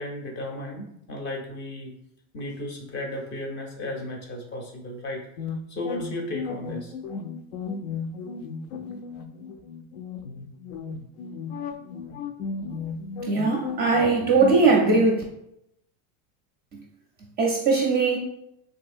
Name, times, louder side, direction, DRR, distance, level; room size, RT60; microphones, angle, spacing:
voice 1, 0.0-1.9 2.3-5.3 5.7-6.9, left 1 dB, 30° left, 1 dB, 0.5 m, -34 dB
sound 1, 5.4-15.1, left 5 dB, 75° left, 0.5 m, -35 dB
voice 2, 13.3-15.2 17.4-18.2, right 3 dB, 25° right, -1 dB, 0.4 m, -20 dB
3.5 x 2.7 x 2.5 m, 0.78 s
supercardioid pair, 140°, 41 cm